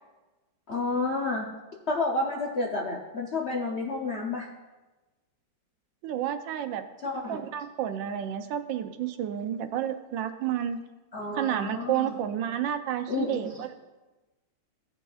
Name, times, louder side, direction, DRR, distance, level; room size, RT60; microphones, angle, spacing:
voice 1, 0.7-1.5 1.9-4.5 7.0-7.4 11.1-12.2 13.1-13.6, left 3 dB, 60° left, -2 dB, 0.7 m, -30 dB
voice 2, 6.0-6.8 7.3-10.8 11.3-13.7, right 10 dB, 80° right, 8 dB, 1.3 m, -30 dB
16.0 x 5.4 x 2.4 m, 1.2 s
omnidirectional pair, 2.1 m